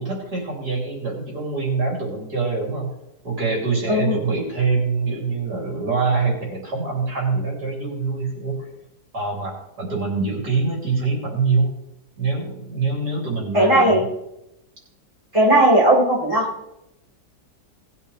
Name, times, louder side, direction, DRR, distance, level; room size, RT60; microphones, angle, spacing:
voice 1, 0.0-2.9 3.2-8.6 9.1-11.7 12.2-14.0, right 4 dB, 70° right, -3 dB, 3.8 m, -24 dB
voice 2, 3.9-4.2 13.5-14.0 15.3-16.5, right 1 dB, 15° right, -6 dB, 4.2 m, -16 dB
18.5 x 8.1 x 3.4 m, 0.85 s
omnidirectional pair, 1.8 m